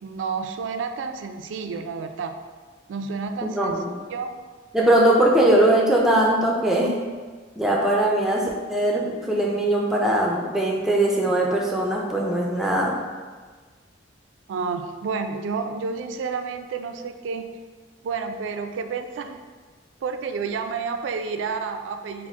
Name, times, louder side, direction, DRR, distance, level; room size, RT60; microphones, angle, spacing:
voice 1, 0.0-2.4 2.9-3.7 4.1-4.4 14.5-17.5 18.0-19.4 20.0-22.3, right 5 dB, 85° right, 8 dB, 0.3 m, -30 dB
voice 2, 3.5-3.9 4.7-6.9 7.6-13.0, right 1 dB, ahead, -2 dB, 0.4 m, -20 dB
4.4 x 2.0 x 3.5 m, 1.5 s
head